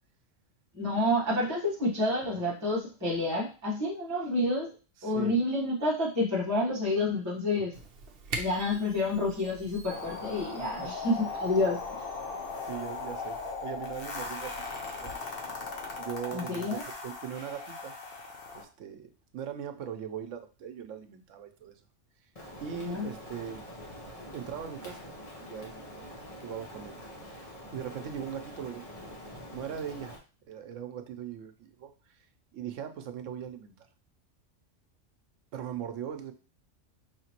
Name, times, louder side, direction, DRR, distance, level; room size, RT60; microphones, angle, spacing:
voice 1, 0.7-4.7 5.0-7.8 8.4-11.8 16.3-16.8 22.8-23.1, left 1 dB, 15° right, -5 dB, 1.1 m, -29 dB
voice 2, 5.0-5.4 10.8-11.0 12.6-15.1 15.6-15.7 16.0-17.9 18.5-21.8 22.6-23.6 24.3-27.0 27.7-28.9 29.5-30.2 30.5-32.2 32.5-33.9 35.5-36.3, right 9 dB, 90° right, 7 dB, 1.0 m, -40 dB
Camera, 7.7-15.2, right 3 dB, 55° right, 0.8 m, -45 dB
sound 1, 9.9-18.6, left 4 dB, 55° left, 1.0 m, -38 dB
Rain, 22.3-30.2, left 1 dB, 30° left, 0.9 m, -45 dB
4.8 x 2.9 x 2.9 m, 0.34 s
omnidirectional pair, 1.3 m